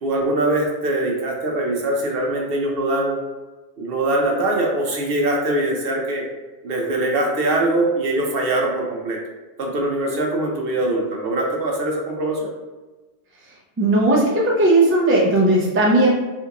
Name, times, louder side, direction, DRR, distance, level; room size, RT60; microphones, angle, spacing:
voice 1, 0.0-3.2 3.8-6.2 6.6-9.2 9.6-12.5, right 1 dB, 65° right, -1 dB, 0.8 m, -22 dB
voice 2, 13.8-16.1, right 2 dB, 20° right, -4 dB, 0.3 m, -16 dB
3.4 x 2.4 x 2.8 m, 1.2 s
omnidirectional pair, 1.2 m